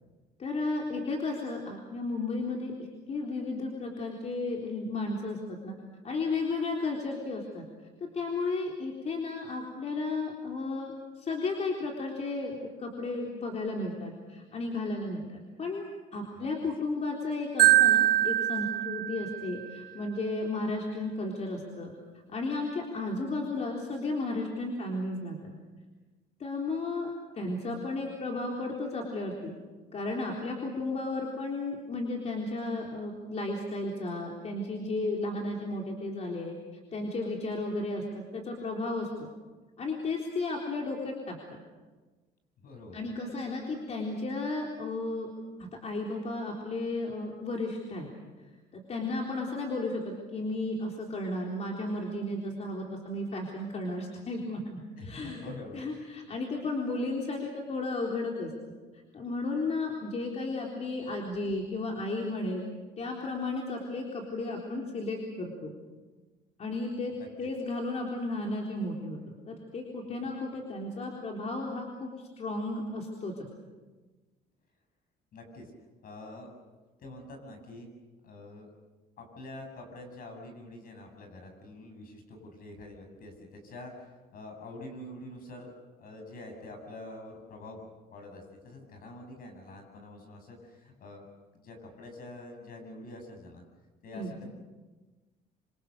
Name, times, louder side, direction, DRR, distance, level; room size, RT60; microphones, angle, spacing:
voice 1, 0.4-2.7 3.1-5.8 6.0-7.6 8.0-21.9 22.3-25.5 26.4-29.5 29.9-36.5 36.9-39.1 39.8-41.4 42.9-45.3 45.8-48.1 48.7-55.4 55.7-58.5 59.1-62.6 63.0-65.7 66.6-69.2 69.5-72.1 72.4-73.5 94.1-94.4, left 2 dB, 40° left, 0 dB, 3.9 m, -34 dB
Marimba xylophone, 17.6-19.7, right 14 dB, 85° right, 2.0 m, -23 dB
voice 2, 42.6-43.0 55.0-55.8 67.1-67.5 75.3-75.7 76.0-76.5 77.0-77.9 78.2-78.7 79.2-85.7 86.0-91.2 91.5-93.6 94.0-94.5, left 2 dB, 60° left, 4 dB, 7.4 m, -46 dB
27.0 x 26.0 x 6.7 m, 1.3 s
cardioid pair, 110°, 17 cm